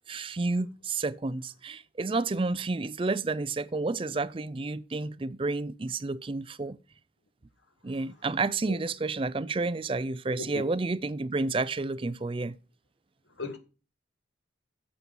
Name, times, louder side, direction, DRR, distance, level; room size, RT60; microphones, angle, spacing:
voice 1, 0.1-6.8 7.8-12.6, right 3 dB, 30° right, 0.4 m, -30 dB
voice 2, 7.8-8.1 8.7-8.8 10.4-10.6 13.4-13.6, left 2 dB, 80° left, 2.0 m, -38 dB
8.8 x 7.5 x 5.4 m
head